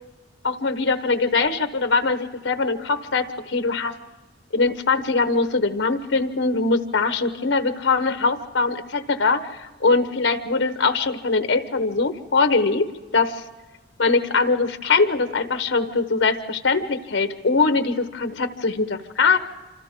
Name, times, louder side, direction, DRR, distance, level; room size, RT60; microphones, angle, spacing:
voice 1, 0.4-3.9 4.5-13.4 14.0-19.4, left 4 dB, 75° left, 9 dB, 1.1 m, -22 dB
27.5 x 25.5 x 3.7 m, 1.3 s
head